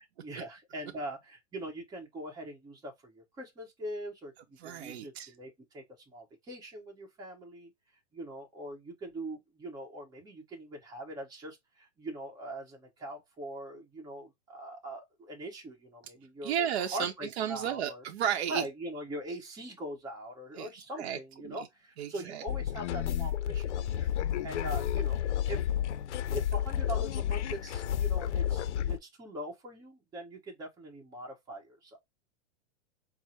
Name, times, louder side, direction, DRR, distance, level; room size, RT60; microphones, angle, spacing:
voice 1, 0.2-7.7 8.1-16.5 16.9-18.0 18.5-25.2 25.5-25.6 26.3-32.0, right 1 dB, 10° right, 0.9 m, -42 dB
voice 2, 4.6-5.3 16.4-18.6 20.6-20.7 21.0-21.2 21.4-21.7 22.0-22.4, right 9 dB, 65° right, 0.7 m, -33 dB
sound 1, 22.5-29.0, left 10 dB, 80° left, 0.5 m, -31 dB
4.6 x 2.1 x 4.2 m
hypercardioid pair, 145°, 35 cm